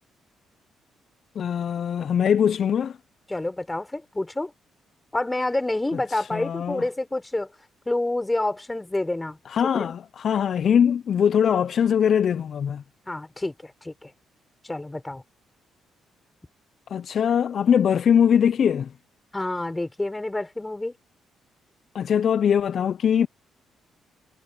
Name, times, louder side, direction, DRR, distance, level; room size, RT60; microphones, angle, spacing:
voice 1, 1.4-3.0 6.1-6.8 9.5-12.8 16.9-18.9 21.9-23.3, left 8 dB, 55° left, 0.4 m, -22 dB
voice 2, 3.3-4.5 5.1-7.5 7.9-9.9 13.1-14.1 14.6-15.2 19.3-20.9, left 2 dB, 15° left, 4.1 m, -28 dB
cardioid pair, 90°, 0 cm